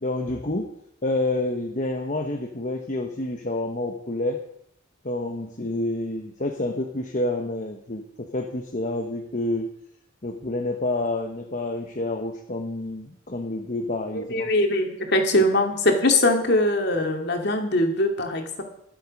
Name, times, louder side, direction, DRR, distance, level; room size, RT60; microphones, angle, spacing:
voice 1, 0.0-0.7 1.0-4.4 5.0-9.7 10.2-14.5, left 2 dB, 40° left, 3 dB, 1.1 m, -28 dB
voice 2, 14.1-18.6, left 1 dB, 55° left, 3 dB, 2.3 m, -22 dB
21.0 x 7.7 x 5.3 m, 0.74 s
head